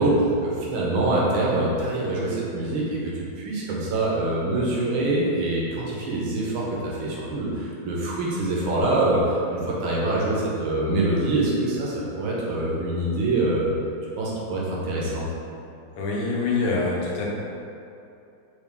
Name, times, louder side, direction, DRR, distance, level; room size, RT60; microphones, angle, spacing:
voice 1, 0.0-3.1 3.4-13.7 14.2-15.3, right 2 dB, 75° right, -5 dB, 1.6 m, -24 dB
voice 2, 16.0-17.2, left 3 dB, 85° left, -4 dB, 1.7 m, -25 dB
4.7 x 2.4 x 3.5 m, 2.8 s
omnidirectional pair, 2.4 m